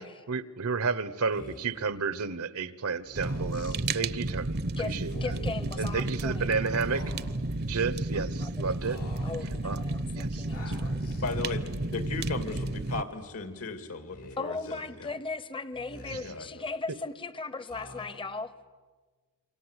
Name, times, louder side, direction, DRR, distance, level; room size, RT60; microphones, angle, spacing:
voice 1, 0.3-4.6 4.8-5.1 5.8-7.0 7.6-9.0 9.6-9.8 10.2-10.4 16.1-16.2, right 5 dB, 75° right, 16 dB, 1.1 m, -31 dB
Speech, 1.3-1.8 3.0-3.8 5.0-5.6 6.9-7.6 8.8-9.5 10.5-11.3 12.3-12.9 14.1-14.8 15.7-16.5 17.7-18.4, left 2 dB, 90° left, 5.5 m, -46 dB
Fire, 3.2-13.0, right 2 dB, 45° right, 0.8 m, -32 dB
voice 2, 4.8-6.5 8.1-11.1 14.4-18.5, left 3 dB, 25° left, 15 dB, 0.9 m, -38 dB
voice 3, 11.1-15.1 16.2-16.7, left 3 dB, 70° left, 9 dB, 2.4 m, -36 dB
28.5 x 25.0 x 8.2 m, 1.4 s
head